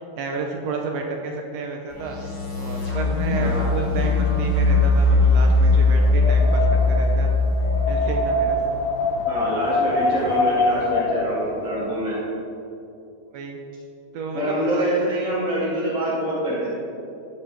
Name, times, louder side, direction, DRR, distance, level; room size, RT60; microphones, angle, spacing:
voice 1, 0.2-2.2 2.6-7.3 7.9-8.6 13.3-13.6 14.1-14.8, right 4 dB, 75° right, 2 dB, 1.7 m, -31 dB
sound 1, 1.9-8.1, left 2 dB, 15° left, 1.2 m, -19 dB
voice 2, 3.4-3.8 9.3-12.2 14.3-16.7, right 1 dB, ahead, -8 dB, 1.3 m, -25 dB
Wind, 6.0-12.0, left 2 dB, 85° left, 1.2 m, -24 dB
13.5 x 5.6 x 3.4 m, 2.6 s
omnidirectional pair, 3.5 m